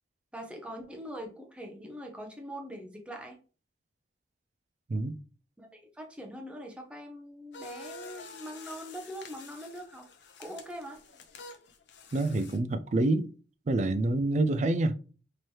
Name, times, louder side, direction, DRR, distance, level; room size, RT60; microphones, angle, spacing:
voice 1, 0.3-3.4 5.6-10.1 10.4-11.0, equal, 5° right, 0.7 m, -42 dB
sound 1, 7.5-12.6, left 3 dB, 70° left, 0.7 m, -48 dB
voice 2, 12.1-13.3 13.7-14.9, right 2 dB, 40° right, 0.3 m, -27 dB
3.1 x 2.9 x 4.5 m
head